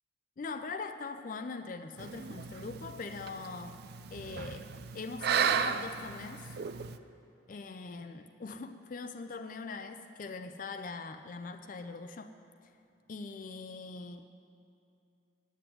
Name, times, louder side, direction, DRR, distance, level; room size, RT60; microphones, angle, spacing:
voice 1, 0.4-3.8 4.1-6.6 7.5-12.3 13.1-14.2, left 4 dB, 40° left, 8 dB, 0.4 m, -41 dB
sound 1, 2.0-7.0, right 7 dB, 50° right, 0.3 m, -35 dB
9.4 x 7.8 x 9.0 m, 2.5 s
head